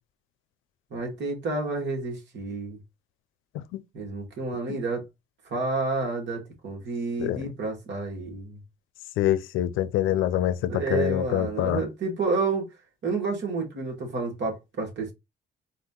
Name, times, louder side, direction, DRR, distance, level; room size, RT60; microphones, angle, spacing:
voice 1, 0.9-2.8 3.9-5.0 5.5-8.6 10.7-12.7 13.0-15.1, right 3 dB, 65° right, 2.2 m, -30 dB
voice 2, 9.2-11.8, left 12 dB, 90° left, 0.5 m, -25 dB
4.0 x 2.8 x 3.8 m
cardioid pair, 90°, 20 cm